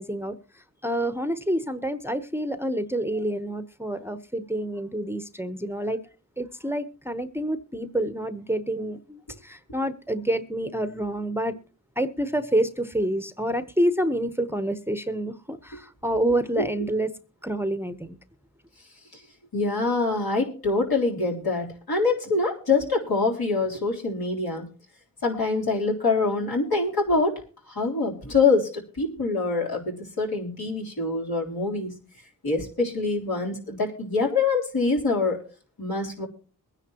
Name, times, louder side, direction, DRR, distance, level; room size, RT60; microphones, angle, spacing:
voice 1, 0.0-6.0 6.4-11.5 12.0-17.1 17.4-18.2, right 1 dB, 5° right, 0.9 m, -28 dB
voice 2, 19.5-24.7 25.2-32.0 32.4-35.4 35.8-36.3, left 3 dB, 75° left, 3.7 m, -25 dB
22.5 x 9.9 x 3.0 m
cardioid pair, 55°, 37 cm